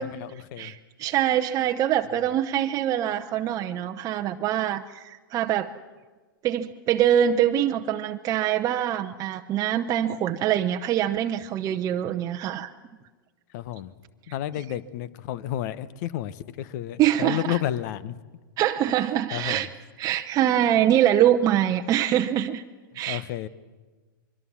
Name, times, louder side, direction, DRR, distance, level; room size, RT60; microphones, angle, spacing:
voice 1, 0.0-0.8 13.5-13.9 14.3-18.2 18.9-19.0 19.3-19.7 22.9-23.5, left 12 dB, 50° left, 17 dB, 1.2 m, -31 dB
voice 2, 0.6-5.7 6.4-12.7 17.0-17.6 18.6-19.7 20.0-22.6 22.9-23.2, right 11 dB, 30° right, 5 dB, 0.9 m, -24 dB
25.0 x 22.5 x 7.4 m, 1.3 s
hypercardioid pair, 110°, 12 cm